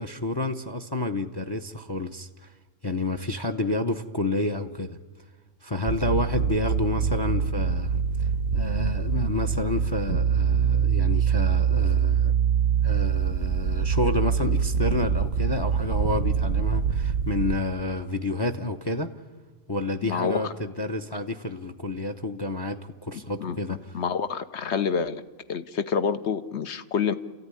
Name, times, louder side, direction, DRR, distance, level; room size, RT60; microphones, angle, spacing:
voice 1, 0.0-2.5 2.8-5.0 5.6-8.0 8.5-12.4 12.8-19.1 19.7-24.0, left 2 dB, 25° left, 0.6 m, -29 dB
sound 1, 5.9-17.6, right 7 dB, 85° right, 1.3 m, -24 dB
voice 2, 20.0-20.5 23.4-25.2 25.5-27.1, left 6 dB, 65° left, 1.1 m, -28 dB
29.0 x 14.0 x 9.8 m
omnidirectional pair, 1.3 m